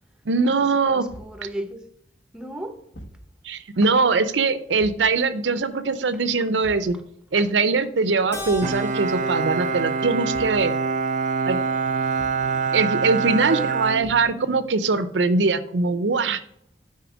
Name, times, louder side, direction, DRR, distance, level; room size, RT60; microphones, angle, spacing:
voice 1, 0.3-1.0 3.4-7.0 7.3-10.7 11.5-11.6 12.7-16.4, right 4 dB, 90° right, 0.6 m, -22 dB
voice 2, 0.9-1.9 2.3-2.9 3.8-3.9 7.3-7.5 9.7-9.8 13.5-13.7, right 1 dB, 5° right, 0.7 m, -35 dB
Thump thud, 1.1-1.4 2.9-3.3 4.8-5.1 6.6-7.0 8.5-8.8 10.3-10.7 12.2-12.5 14.0-14.4, equal, 70° left, 1.3 m, -42 dB
Keyboard (musical), 8.3-12.9, right 1 dB, 15° left, 1.4 m, -40 dB
Bowed string instrument, 8.6-14.8, right 5 dB, 45° right, 0.3 m, -25 dB
9.4 x 4.3 x 5.0 m
head